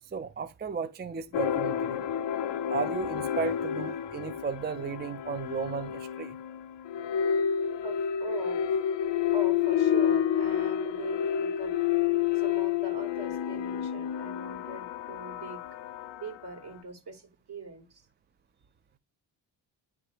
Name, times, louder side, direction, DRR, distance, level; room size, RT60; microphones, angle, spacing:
voice 1, 0.1-2.1 2.7-6.4, right 5 dB, 25° right, 0.5 m, -34 dB
sound 1, 1.3-16.6, left 9 dB, 75° left, 0.6 m, -29 dB
voice 2, 7.8-8.6 9.3-11.7 12.3-15.6 16.2-18.0, right 3 dB, 65° right, 2.1 m, -42 dB
9.4 x 3.3 x 3.3 m
cardioid pair, 60°, 43 cm